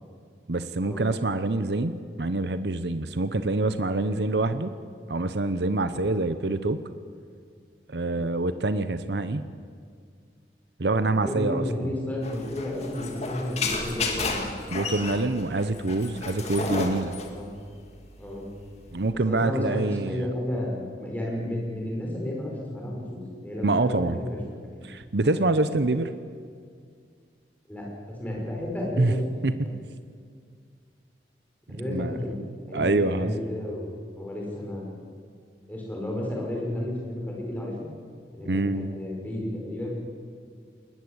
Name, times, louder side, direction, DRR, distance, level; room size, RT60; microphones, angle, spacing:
voice 1, 0.5-4.7 5.1-6.8 7.9-9.4 10.8-11.6 14.7-17.1 18.9-20.2 23.6-24.2 24.8-26.1 29.0-29.1 29.4-29.7 31.7-32.2 32.7-33.3 38.5-38.9, right 2 dB, 70° right, 11 dB, 0.9 m, -26 dB
voice 2, 11.1-14.5 17.3-17.5 18.2-18.5 19.2-24.9 25.2-25.4 27.7-29.3 29.6-29.7 31.7-32.3 32.7-35.0 35.7-37.9 38.3-39.9, left 1 dB, 10° left, -2 dB, 5.5 m, -32 dB
sound 1, 12.2-19.1, left 3 dB, 35° left, 2.3 m, -32 dB
20.5 x 20.0 x 8.1 m, 2.1 s
head